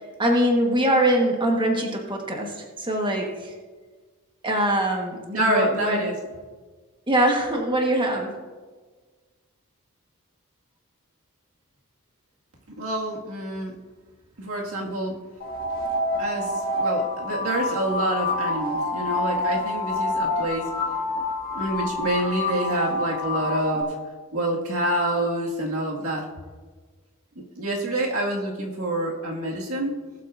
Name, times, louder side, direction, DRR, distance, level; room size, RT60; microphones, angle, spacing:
voice 1, 0.2-3.5 4.4-6.0 7.1-8.3, right 1 dB, 20° right, 1 dB, 1.3 m, -23 dB
voice 2, 5.3-6.1 12.8-13.7 14.4-15.2 16.2-16.5 16.8-20.7 21.5-23.9 24.3-26.2 27.6-29.9, right 1 dB, 80° right, -1 dB, 1.9 m, -27 dB
sound 1, 15.4-23.8, left 2 dB, 45° left, 1.7 m, -27 dB
19.0 x 8.2 x 2.5 m, 1.4 s
head